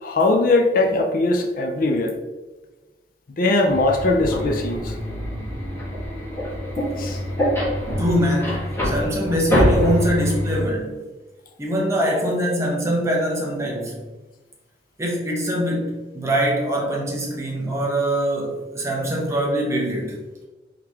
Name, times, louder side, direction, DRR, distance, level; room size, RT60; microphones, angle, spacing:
voice 1, 0.0-2.2 3.4-5.0 7.0-7.2, left 2 dB, 50° left, 3 dB, 0.5 m, -20 dB
sound 1, 3.7-10.6, equal, 15° left, 1.4 m, -24 dB
voice 2, 8.0-11.0 11.6-14.0 15.0-20.2, equal, 15° right, -2 dB, 0.9 m, -23 dB
4.7 x 3.9 x 2.8 m, 1.2 s
head